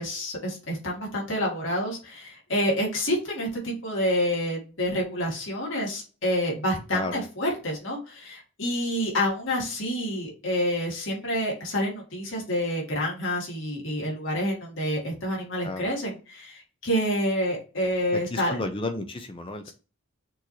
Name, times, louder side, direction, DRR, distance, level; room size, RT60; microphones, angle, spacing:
voice 1, 0.0-18.6, equal, 60° left, -2 dB, 2.2 m, -28 dB
voice 2, 6.9-7.2 15.6-15.9 18.1-19.7, left 2 dB, 25° left, 7 dB, 0.5 m, -32 dB
6.2 x 3.1 x 2.7 m, 0.33 s
head